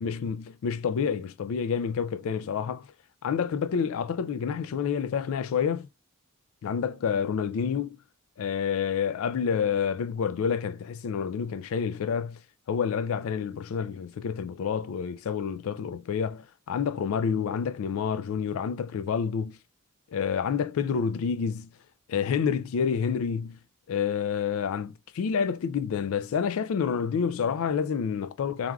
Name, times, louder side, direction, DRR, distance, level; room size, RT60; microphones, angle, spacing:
voice 1, 0.0-2.9 3.2-5.9 6.6-8.0 8.4-12.4 12.7-19.6 20.1-21.7 22.1-23.6 23.9-28.7, left 6 dB, 65° left, 0.3 m, -28 dB
3.3 x 2.3 x 2.2 m
head